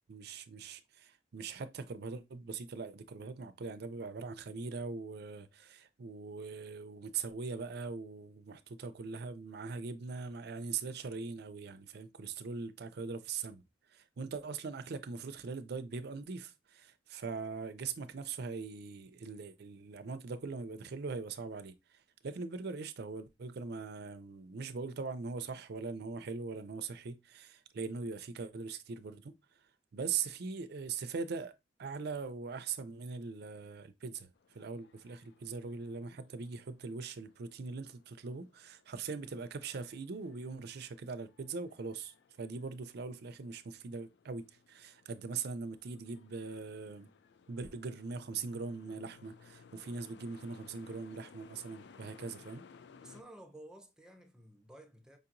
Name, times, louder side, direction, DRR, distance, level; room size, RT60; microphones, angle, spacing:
voice 1, 0.1-13.6 13.9-29.3 29.9-31.5 31.8-47.1 47.5-52.6, right 4 dB, 55° right, 0.5 m, -41 dB
sound 1, 34.3-53.2, left 5 dB, 60° left, 0.4 m, -61 dB
voice 2, 53.0-55.2, right 1 dB, 5° right, 0.6 m, -53 dB
5.1 x 2.8 x 2.5 m
head